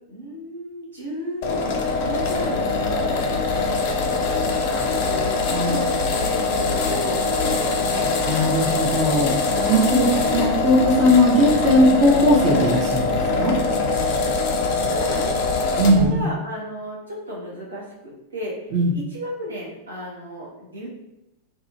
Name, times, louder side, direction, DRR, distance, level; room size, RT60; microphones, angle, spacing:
voice 1, 0.1-1.6 2.0-3.4 3.7-5.4 5.6-8.1 9.9-10.2 14.9-15.5 15.8-20.9, equal, 75° right, -4 dB, 0.7 m, -34 dB
sound 1, 1.4-16.1, left 3 dB, 45° left, 0.4 m, -23 dB
voice 2, 8.3-13.5 15.8-16.3 18.7-19.0, equal, 35° right, -2 dB, 0.6 m, -19 dB
2.6 x 2.3 x 2.8 m, 0.90 s
figure-of-eight pair, 90°, 0 cm